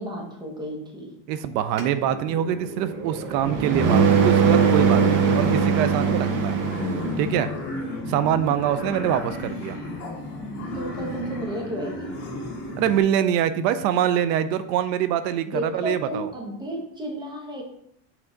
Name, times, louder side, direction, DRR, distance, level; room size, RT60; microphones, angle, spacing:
voice 1, 0.0-1.1 10.7-12.2 15.5-17.6, equal, 10° right, 0 dB, 0.9 m, -32 dB
voice 2, 1.3-6.7 7.2-7.5 8.0-9.8 12.8-16.3, right 10 dB, 90° right, 12 dB, 0.7 m, -24 dB
sound 1, 1.8-7.4, right 6 dB, 30° right, 0.4 m, -21 dB
sound 2, 4.5-13.0, left 2 dB, 25° left, 2.2 m, -33 dB
6.2 x 4.5 x 3.9 m, 0.72 s
cardioid pair, 165°, 49 cm